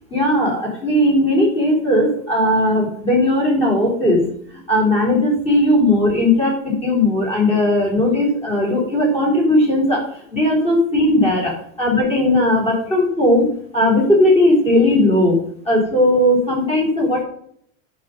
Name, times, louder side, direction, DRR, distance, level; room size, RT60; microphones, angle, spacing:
voice 1, 0.1-4.3 4.7-17.2, left 1 dB, 15° left, -2 dB, 3.7 m, -17 dB
11.0 x 5.2 x 5.3 m, 0.64 s
supercardioid pair, 165°, 39 cm